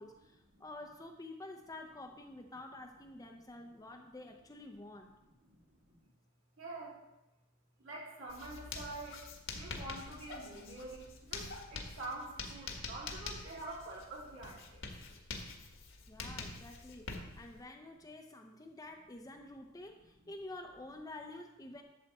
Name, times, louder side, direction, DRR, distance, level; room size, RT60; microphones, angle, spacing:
voice 1, 0.0-5.1 16.1-21.8, left 2 dB, 20° left, 2 dB, 0.7 m, -49 dB
voice 2, 5.4-6.1 6.6-7.0 7.8-14.8, right 2 dB, 65° right, -4 dB, 3.4 m, -46 dB
Writing, 8.3-17.6, left 3 dB, 65° left, 1.6 m, -46 dB
12.0 x 7.3 x 4.2 m, 0.96 s
head